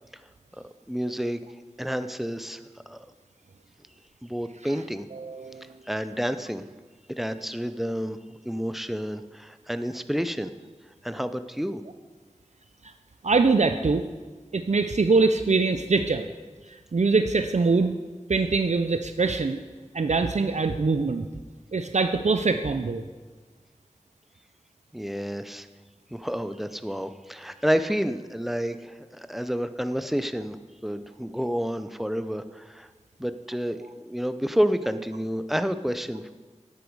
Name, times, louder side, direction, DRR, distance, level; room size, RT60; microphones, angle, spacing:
voice 1, 0.6-1.4 1.8-2.6 2.9-3.0 4.2-5.0 5.9-6.6 7.1-8.2 8.4-10.5 11.0-11.8 24.9-25.7 26.1-30.6 30.8-32.9 33.2-36.3, equal, ahead, 11 dB, 0.5 m, -29 dB
voice 2, 5.1-5.7 13.2-14.0 14.5-16.3 16.7-17.9 18.3-19.6 19.9-21.3 21.7-23.0, right 4 dB, 70° right, 8 dB, 0.4 m, -23 dB
10.0 x 8.3 x 4.7 m, 1.4 s
wide cardioid pair, 40°, 12 cm